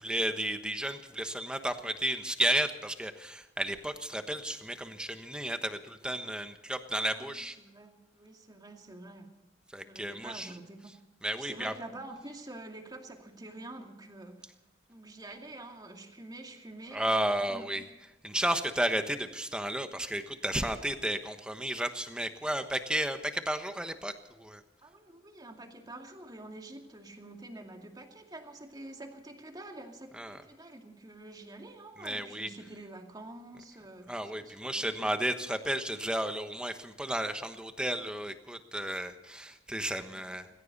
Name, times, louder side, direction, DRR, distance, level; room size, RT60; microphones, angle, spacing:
voice 1, 0.0-7.6 9.7-10.5 11.2-11.7 16.9-17.8 18.2-24.6 30.2-30.4 32.0-32.5 34.1-40.5, right 1 dB, 5° right, 8 dB, 1.2 m, -33 dB
voice 2, 7.0-9.3 9.8-11.0 11.4-14.5 14.9-17.8 24.8-35.2 40.1-40.4, right 2 dB, 20° right, 3 dB, 2.3 m, -47 dB
20.0 x 17.0 x 4.1 m, 0.99 s
head